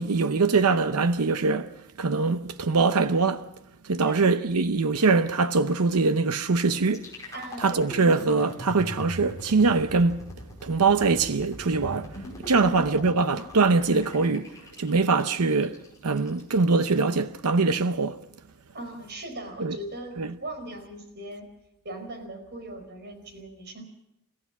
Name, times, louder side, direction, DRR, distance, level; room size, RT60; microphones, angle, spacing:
voice 1, 0.0-3.5 3.8-7.1 7.6-10.2 10.6-18.2 19.6-19.8 20.2-20.4, right 4 dB, 85° right, 0.8 m, -23 dB
voice 2, 4.0-4.4 7.3-7.7 12.6-13.0 18.7-21.4 21.8-23.8, right 1 dB, 50° right, 4.9 m, -39 dB
sound 1, 6.8-16.8, equal, 15° left, 5.3 m, -41 dB
30.0 x 15.0 x 6.0 m
head